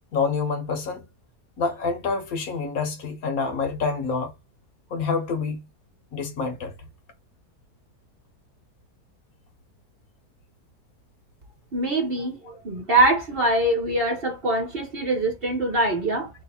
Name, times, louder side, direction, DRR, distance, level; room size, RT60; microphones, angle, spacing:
voice 1, 0.1-1.1 1.6-4.3 4.9-5.6 6.1-6.7, left 4 dB, 65° left, 1.3 m, -27 dB
voice 2, 11.7-16.3, right 2 dB, 40° right, 1.0 m, -23 dB
3.1 x 3.1 x 4.2 m
omnidirectional pair, 1.7 m